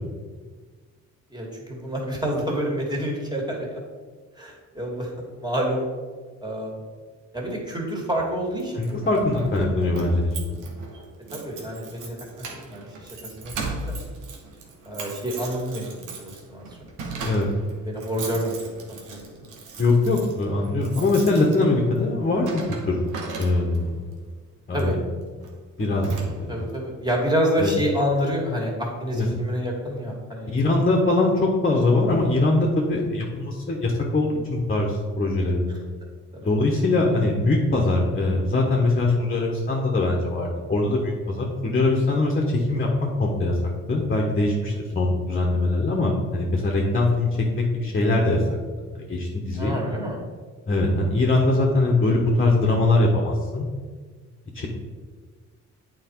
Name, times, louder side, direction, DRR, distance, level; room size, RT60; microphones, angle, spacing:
voice 1, 1.3-3.8 4.4-5.9 6.4-6.7 7.3-9.0 11.3-13.5 13.8-14.0 14.9-16.7 17.8-19.4 24.7-25.0 26.5-30.5 46.6-46.7 49.6-50.2, equal, 15° right, -2 dB, 2.3 m, -28 dB
Keys jangling, 8.6-23.9 24.7-25.0 25.4-25.5 25.8-26.7, right 3 dB, 85° right, 1.4 m, -37 dB
voice 2, 8.8-10.6 17.2-17.5 19.8-23.0 23.4-23.9 24.7-24.9 25.8-26.1 26.4-26.6 27.6-27.7 29.1-29.3 30.5-35.7 36.4-42.9 43.2-43.6 43.9-47.3 47.6-48.4 49.1-49.8 50.7-53.7 54.5-54.7, left 2 dB, 30° left, -1 dB, 1.3 m, -22 dB
8.6 x 4.5 x 4.7 m, 1.5 s
cardioid pair, 90°, 30 cm